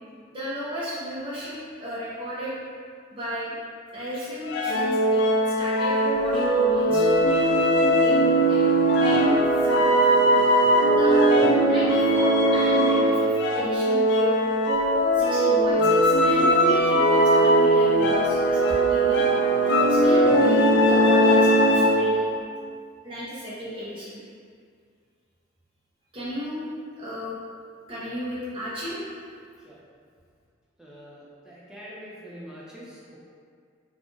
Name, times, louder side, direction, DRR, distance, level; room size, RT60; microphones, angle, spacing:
voice 1, 0.3-2.6 3.1-3.5 3.9-5.2 5.6-7.4 8.0-8.7 8.9-10.4 10.9-11.2 11.7-14.4 15.1-19.2 19.9-22.4 23.0-24.2 26.1-26.7 27.0-27.4 27.9-29.0, equal, 25° right, -9 dB, 0.8 m, -34 dB
sound 1, 4.5-22.2, right 1 dB, 55° left, 0.3 m, -20 dB
voice 2, 30.8-33.2, equal, 5° right, -7 dB, 0.5 m, -44 dB
2.5 x 2.4 x 3.8 m, 2.1 s
head